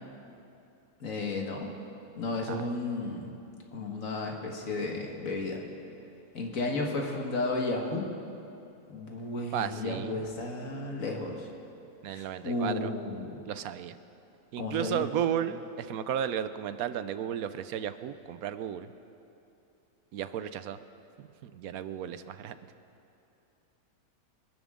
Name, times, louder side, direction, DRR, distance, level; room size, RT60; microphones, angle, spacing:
voice 1, 1.0-1.7 2.2-3.3 3.7-5.6 6.3-8.1 8.9-11.5 12.1-13.3 14.6-15.1, left 2 dB, 70° left, 1 dB, 2.0 m, -33 dB
voice 2, 9.5-10.1 12.0-12.9 13.5-14.0 14.5-18.9 20.1-20.8 21.2-22.5, right 9 dB, 85° right, 12 dB, 1.1 m, -34 dB
26.5 x 11.0 x 3.7 m, 2.7 s
omnidirectional pair, 1.5 m